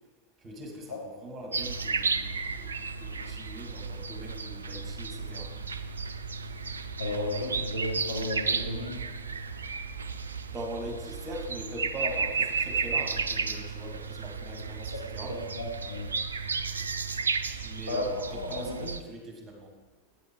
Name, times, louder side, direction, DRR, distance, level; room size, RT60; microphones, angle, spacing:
voice 1, 0.4-5.6 10.5-15.4 17.6-19.7, equal, 20° right, 1 dB, 1.9 m, -41 dB
sound 1, 1.5-19.0, right 5 dB, 75° right, 0.4 m, -33 dB
voice 2, 7.0-9.0 14.9-15.0 15.3-16.1 17.9-18.0 18.3-18.9, left 1 dB, 85° left, -3 dB, 2.7 m, -33 dB
8.9 x 8.0 x 4.5 m, 1.3 s
figure-of-eight pair, 90°, 0 cm